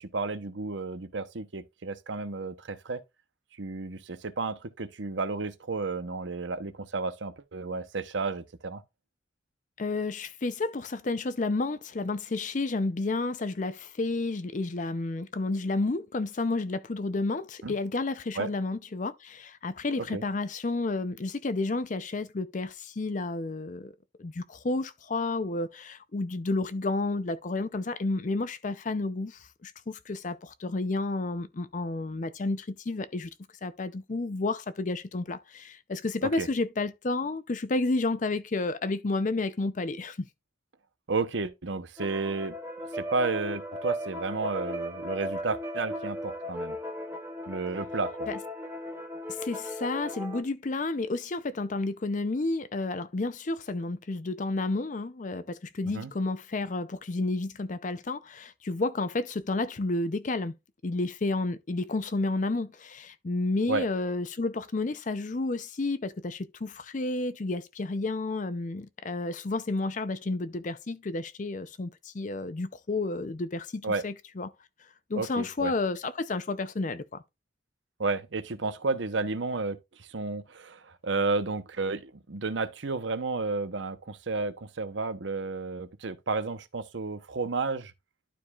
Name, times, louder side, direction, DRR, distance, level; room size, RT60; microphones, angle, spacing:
voice 1, 0.0-3.0 3.6-8.8 17.6-17.7 18.4-18.5 20.0-20.2 36.2-36.5 41.1-42.6 42.9-46.8 47.5-48.3 55.8-56.1 63.7-63.8 73.8-74.0 75.2-75.7 78.0-87.9, right 3 dB, 75° right, 0.8 m, -32 dB
voice 2, 9.8-23.9 24.2-33.3 33.6-40.3 48.3-48.4 49.3-60.5 60.8-74.5 75.1-77.2, left 2 dB, 40° left, 0.5 m, -31 dB
sound 1, 42.0-50.4, equal, 15° right, 1.1 m, -36 dB
12.0 x 4.7 x 2.3 m
head